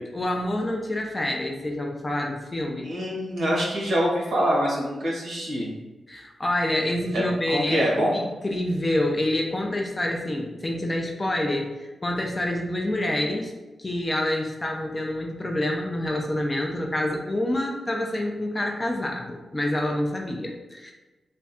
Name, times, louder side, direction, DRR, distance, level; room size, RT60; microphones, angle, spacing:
voice 1, 0.1-2.9 6.1-7.9 8.1-13.5 13.8-20.9, left 1 dB, 20° left, 1 dB, 0.4 m, -27 dB
voice 2, 2.8-5.7 7.1-8.2, equal, 60° right, -5 dB, 1.4 m, -25 dB
3.4 x 2.2 x 4.0 m, 1.2 s
wide cardioid pair, 170°, 0 cm